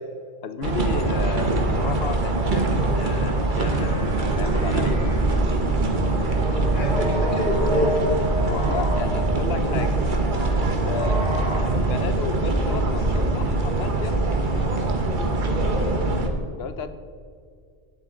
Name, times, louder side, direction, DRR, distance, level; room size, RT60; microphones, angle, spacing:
voice 1, 0.4-5.1 8.5-10.0 10.6-11.2 11.6-14.2 16.5-17.0, left 7 dB, 65° left, 11 dB, 1.0 m, -33 dB
sound 1, 0.6-16.3, right 2 dB, 45° right, 1.2 m, -23 dB
sound 2, 3.4-11.6, equal, 5° right, 2.7 m, -33 dB
voice 2, 6.5-8.1 15.6-16.1, left 1 dB, 45° left, -4 dB, 2.5 m, -27 dB
18.5 x 7.5 x 3.8 m, 2.2 s
omnidirectional pair, 1.2 m